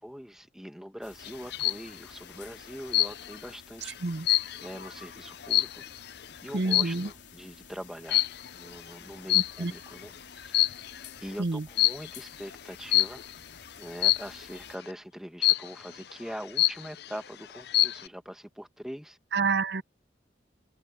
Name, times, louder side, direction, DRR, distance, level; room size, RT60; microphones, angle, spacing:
voice 1, 0.0-3.9 4.6-5.8 6.4-8.3 8.5-10.7 11.2-13.2 13.8-19.2, equal, 5° right, 1.6 m, -43 dB
sound 1, 1.0-14.8, left 6 dB, 85° left, 3.4 m, -52 dB
sound 2, 1.2-1.9 2.9-3.5 3.8-6.1 6.7-7.1 8.1-8.5 9.3-9.9 10.4-11.1 11.8-12.1 12.9-13.3 14.0-14.4 15.4-15.9 16.3-16.4 16.6-17.2 17.5-18.1, left 16 dB, 65° left, 0.6 m, -25 dB
voice 2, 6.5-7.1 9.3-9.7 11.4-11.7 19.3-19.8, right 3 dB, 65° right, 0.8 m, -28 dB
head